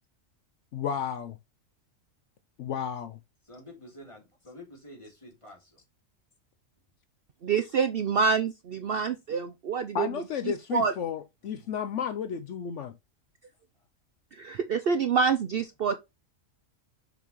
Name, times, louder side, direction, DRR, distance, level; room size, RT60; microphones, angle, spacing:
voice 1, 0.7-1.4 2.6-3.2 9.9-13.0, left 8 dB, 70° left, 0.9 m, -32 dB
voice 2, 3.4-5.8 11.5-11.8, left 1 dB, 20° left, 3.5 m, -49 dB
voice 3, 7.4-10.1 10.7-10.9 14.3-16.0, right 5 dB, 55° right, 0.7 m, -26 dB
7.1 x 5.8 x 3.0 m
omnidirectional pair, 1.4 m